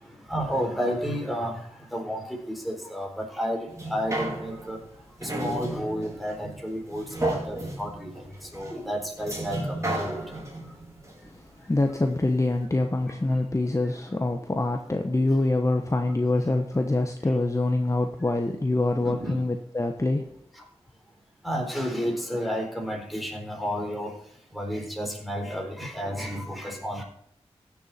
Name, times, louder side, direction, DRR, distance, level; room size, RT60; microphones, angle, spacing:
voice 1, 0.0-4.8 5.2-8.1 8.4-10.4 13.8-13.9 17.2-17.3 19.0-19.4 20.5-20.7 21.4-24.2 24.5-27.0, equal, ahead, 1 dB, 4.0 m, -31 dB
sound 1, 3.7-12.2 12.6-12.7, right 1 dB, 25° right, 4.1 m, -34 dB
voice 2, 11.7-20.3, left 2 dB, 25° left, 5 dB, 1.1 m, -25 dB
15.5 x 7.2 x 4.3 m, 0.72 s
wide cardioid pair, 60°, 11 cm